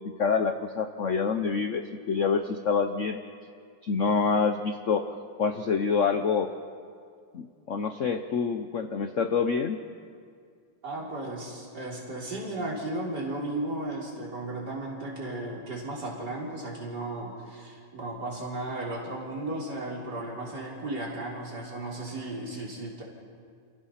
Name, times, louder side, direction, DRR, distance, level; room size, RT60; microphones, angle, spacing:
voice 1, 0.0-3.2 3.8-5.1 5.4-6.5 7.3-9.8, left 5 dB, 70° left, 8 dB, 0.7 m, -27 dB
voice 2, 10.8-23.0, right 2 dB, 50° right, -4 dB, 4.4 m, -35 dB
29.0 x 16.5 x 5.8 m, 2.2 s
omnidirectional pair, 2.4 m